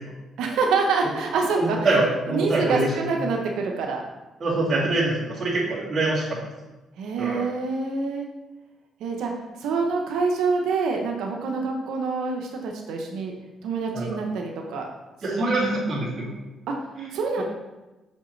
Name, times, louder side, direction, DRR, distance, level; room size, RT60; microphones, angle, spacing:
voice 1, 0.4-1.8 2.3-4.0 7.0-8.3 9.0-9.3 9.6-13.3 13.6-14.9 15.3-15.5 16.7-16.8 17.1-17.4, right 4 dB, 85° right, 1 dB, 0.8 m, -26 dB
voice 2, 1.6-2.9 4.4-6.2 7.2-7.5 13.9-14.2 15.2-16.4 17.0-17.1 17.4-17.5, right 2 dB, 35° right, -10 dB, 2.3 m, -24 dB
6.4 x 5.7 x 3.2 m, 1.1 s
cardioid pair, 90°, 0 cm